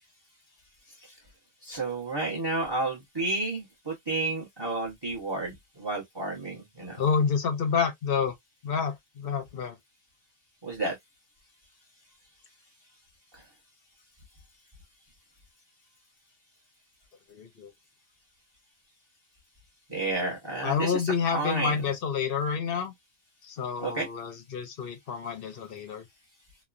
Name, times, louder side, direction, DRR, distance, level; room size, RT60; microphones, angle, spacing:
voice 1, 1.6-7.0 10.6-11.0 13.3-13.4 19.9-21.0 21.3-21.7 23.8-24.1, right 2 dB, 20° right, 0.8 m, -31 dB
voice 2, 7.0-8.3 8.6-9.8 17.3-17.7 20.6-22.9 23.4-26.1, left 6 dB, 55° left, 0.7 m, -29 dB
3.1 x 2.2 x 2.4 m
omnidirectional pair, 1.6 m